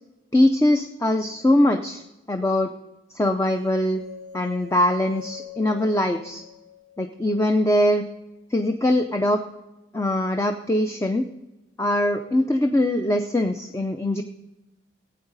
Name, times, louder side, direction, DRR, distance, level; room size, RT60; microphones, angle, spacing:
voice 1, 0.3-2.0 2.3-2.7 3.1-4.0 4.3-6.4 7.0-8.1 8.5-9.4 9.9-11.3 11.8-14.2, left 1 dB, 15° left, 5 dB, 0.5 m, -22 dB
sound 1, 3.6-7.7, left 8 dB, 50° left, 2.8 m, -43 dB
16.0 x 8.8 x 4.0 m, 1.0 s
head